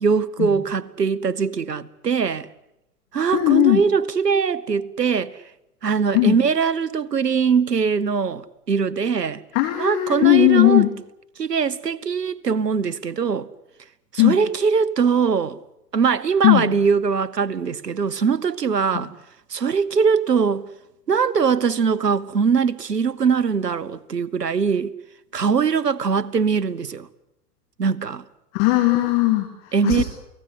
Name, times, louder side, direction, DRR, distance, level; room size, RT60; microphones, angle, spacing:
voice 1, 0.0-2.5 3.1-5.4 5.8-9.4 9.8-10.9 11.4-13.5 14.1-15.6 15.9-19.1 19.5-20.7 21.1-24.9 25.3-27.1 27.8-28.2 29.7-30.0, right 6 dB, 80° right, 1.2 m, -21 dB
voice 2, 3.3-3.8 6.1-6.4 9.5-10.9 14.2-14.4 16.4-16.7 18.9-19.0 28.5-30.0, left 19 dB, 40° left, 3.0 m, -18 dB
29.0 x 18.5 x 8.4 m
figure-of-eight pair, 95°, 48 cm